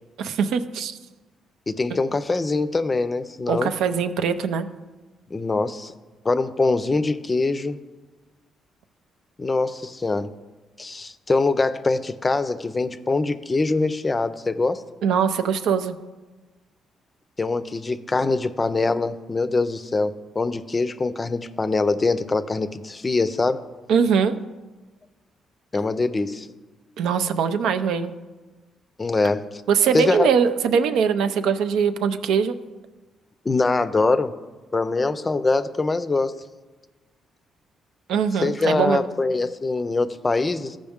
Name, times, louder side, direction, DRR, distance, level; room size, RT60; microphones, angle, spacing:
voice 1, 0.2-1.0 3.5-4.7 15.0-15.9 23.9-24.4 27.0-28.1 29.7-32.6 38.1-39.1, right 6 dB, 85° right, 9 dB, 0.5 m, -22 dB
voice 2, 1.7-3.7 5.3-5.9 6.2-7.8 9.4-10.3 10.8-14.8 17.4-23.6 25.7-26.5 29.0-29.6 29.9-30.3 33.5-34.3 34.7-36.4 38.4-40.8, left 3 dB, 25° left, 12 dB, 0.5 m, -23 dB
14.5 x 5.2 x 3.6 m, 1.2 s
cardioid pair, 90°, 0 cm